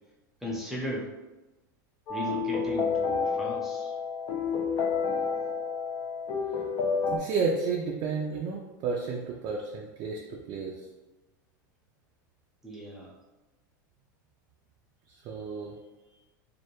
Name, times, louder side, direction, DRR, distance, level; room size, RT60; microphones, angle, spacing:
voice 1, 0.4-1.1 2.1-3.9 12.6-13.1, left 1 dB, 5° right, -4 dB, 0.6 m, -36 dB
sound 1, 2.1-7.2, left 5 dB, 45° left, 0.4 m, -29 dB
voice 2, 7.1-10.7 15.2-15.7, right 4 dB, 40° right, -1 dB, 0.3 m, -31 dB
2.3 x 2.2 x 2.9 m, 1.1 s
hypercardioid pair, 110°, 10 cm